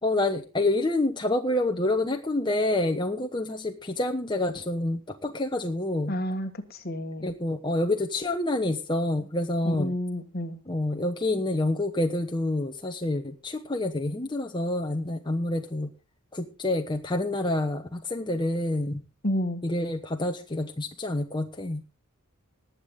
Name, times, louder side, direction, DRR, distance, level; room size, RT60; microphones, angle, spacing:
voice 1, 0.0-6.2 7.2-10.0 10.7-15.9 16.3-19.0 19.6-21.8, left 2 dB, 20° left, 4 dB, 1.0 m, -28 dB
voice 2, 6.1-7.3 9.6-10.6 19.2-19.6, equal, 45° left, 8 dB, 1.6 m, -30 dB
19.5 x 8.5 x 3.7 m, 0.33 s
head